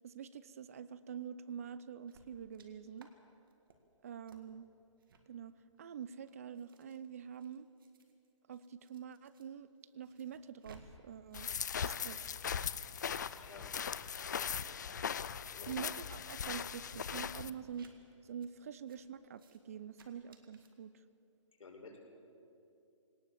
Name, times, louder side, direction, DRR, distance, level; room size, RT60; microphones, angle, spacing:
voice 1, 0.0-3.1 4.0-4.7 5.3-7.7 8.5-9.7 9.9-11.5 11.8-12.2 15.7-17.9 18.2-20.9, right 8 dB, 30° right, 16 dB, 0.5 m, -46 dB
sound 1, 2.1-2.7 3.0-3.1 3.5-3.8 4.3-4.4 5.0-5.2 5.9-9.5 9.8-10.8 11.1-13.5 13.8-14.7 15.0-15.3 15.6-15.9 16.4-16.6 17.0-17.2 17.7-17.9 18.4-18.5 18.9-19.0 19.3-19.6 19.9-20.7, right 4 dB, 45° right, 1.9 m, -64 dB
sound 2, 11.3-17.5, left 7 dB, 35° left, 0.4 m, -39 dB
sound 3, 12.6-17.6, left 1 dB, ahead, 1.6 m, -63 dB
voice 2, 13.3-13.7 14.4-15.0 15.4-15.8 21.6-22.2, left 4 dB, 85° left, 0 dB, 5.3 m, -54 dB
20.0 x 18.5 x 7.3 m, 2.7 s
hypercardioid pair, 170°, 16 cm